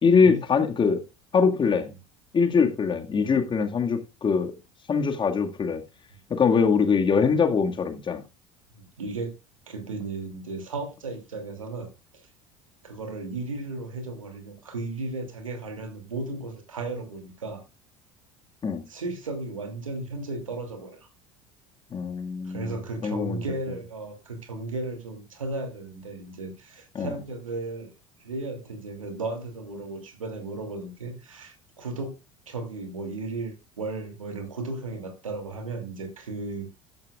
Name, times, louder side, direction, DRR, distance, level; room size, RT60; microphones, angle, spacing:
voice 1, 0.0-1.0 1.3-1.9 2.3-4.5 4.9-5.8 6.3-8.2 18.6-18.8 21.9-23.4 27.0-27.2, left 5 dB, 30° left, 2.0 m, -23 dB
voice 2, 8.8-9.3 9.7-11.9 12.8-17.6 18.9-21.1 22.4-27.9 28.2-32.2 32.5-36.7, right 3 dB, 85° right, 2.7 m, -35 dB
14.5 x 10.5 x 2.4 m
figure-of-eight pair, 70°, 17 cm